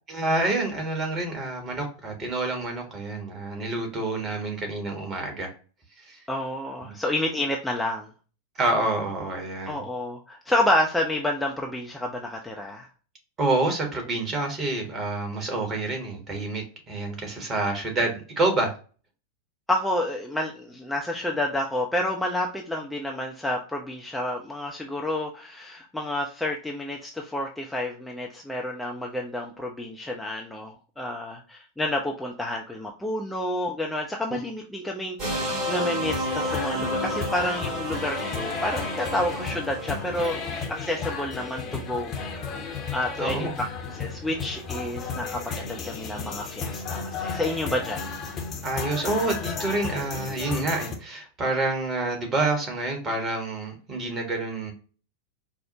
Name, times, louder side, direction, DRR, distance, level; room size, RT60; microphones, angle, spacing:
voice 1, 0.1-5.5 6.0-6.2 8.6-9.8 13.4-18.7 34.3-34.4 43.2-43.5 48.6-54.7, right 2 dB, 25° right, 3 dB, 1.2 m, -28 dB
voice 2, 6.3-8.1 9.7-12.9 17.5-17.6 19.7-40.4 40.7-42.2 42.9-43.7 43.9-48.1, left 1 dB, 5° left, 0 dB, 0.5 m, -29 dB
sound 1, 35.2-40.5, equal, 40° right, 1.6 m, -31 dB
sound 2, 36.0-51.0, left 5 dB, 30° left, 0.8 m, -34 dB
4.7 x 2.0 x 2.7 m, 0.38 s
figure-of-eight pair, 90°, 0 cm